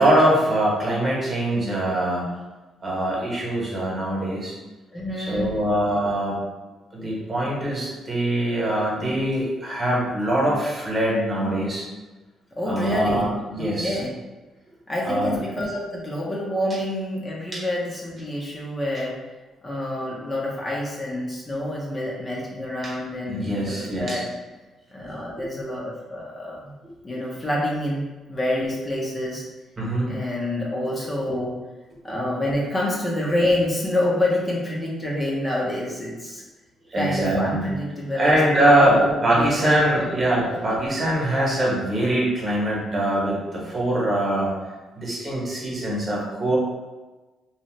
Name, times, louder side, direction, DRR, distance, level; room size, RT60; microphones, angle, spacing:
voice 1, 0.0-2.3 2.8-4.5 5.2-6.4 6.9-11.8 12.6-14.0 15.0-15.4 22.8-22.9 23.3-24.2 29.8-30.1 36.9-37.7 38.1-44.5 44.9-46.6, right 1 dB, 35° right, -4 dB, 1.1 m, -23 dB
voice 2, 4.9-5.6 12.6-13.3 13.6-14.1 14.9-19.2 19.6-24.2 24.9-26.7 27.0-29.4 30.1-31.5 32.0-36.4 36.9-38.4 38.6-39.7 40.0-40.1 40.4-40.8, left 1 dB, 25° left, -4 dB, 0.7 m, -27 dB
2.8 x 2.3 x 3.1 m, 1.2 s
cardioid pair, 90°, 0 cm